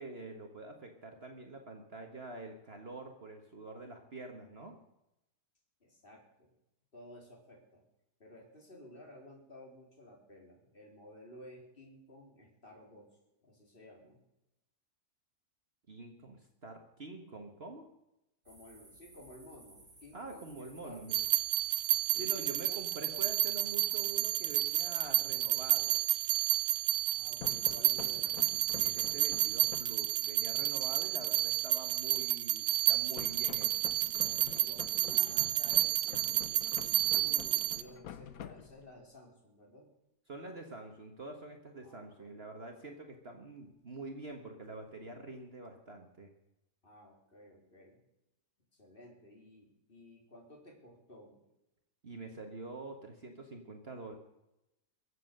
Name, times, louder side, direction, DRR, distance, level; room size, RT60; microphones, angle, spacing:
voice 1, 0.0-4.8 15.9-17.9 20.1-21.2 22.2-26.0 28.7-33.9 40.3-46.3 52.0-54.1, right 2 dB, 40° right, 3 dB, 1.7 m, -46 dB
voice 2, 5.8-6.5 6.9-7.8 8.2-13.2 13.4-14.2 18.4-21.0 22.1-23.2 27.1-28.4 33.2-33.5 34.2-39.9 41.7-42.4 46.8-48.0 48.7-51.4, left 1 dB, 35° left, 0 dB, 3.9 m, -54 dB
sound 1, 18.4-29.8, right 2 dB, 60° right, 4.8 m, -58 dB
sound 2, 21.1-37.8, right 14 dB, 85° right, 1.3 m, -31 dB
sound 3, 27.4-30.1 33.2-39.1, left 9 dB, 70° left, 1.2 m, -48 dB
23.0 x 7.8 x 6.6 m, 0.87 s
omnidirectional pair, 1.6 m